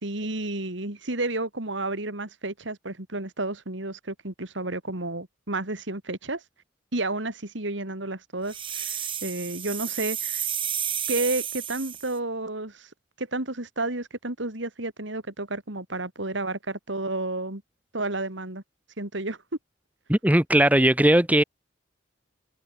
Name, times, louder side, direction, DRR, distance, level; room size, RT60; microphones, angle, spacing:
voice 1, 0.0-6.4 6.9-10.4 11.1-12.9 13.2-17.6 17.9-18.6 19.0-19.4, right 2 dB, 65° right, 3.0 m, -31 dB
sound 1, 8.5-12.2, right 9 dB, 25° right, 2.5 m, -31 dB
voice 2, 20.1-21.4, right 1 dB, 10° right, 1.3 m, -19 dB
head